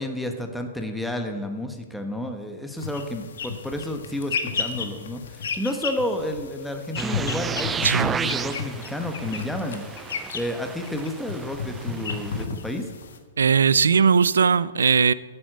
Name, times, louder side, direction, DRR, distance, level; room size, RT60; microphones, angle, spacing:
voice 1, 0.0-12.9, left 1 dB, ahead, 1.3 m, -31 dB
sound 1, 2.8-13.2, left 5 dB, 75° left, 1.6 m, -33 dB
sound 2, 7.0-12.5, right 6 dB, 15° right, 0.4 m, -32 dB
voice 2, 7.8-8.2 13.4-15.1, right 6 dB, 85° right, 0.4 m, -19 dB
9.2 x 8.7 x 7.9 m
hypercardioid pair, 130°, 0 cm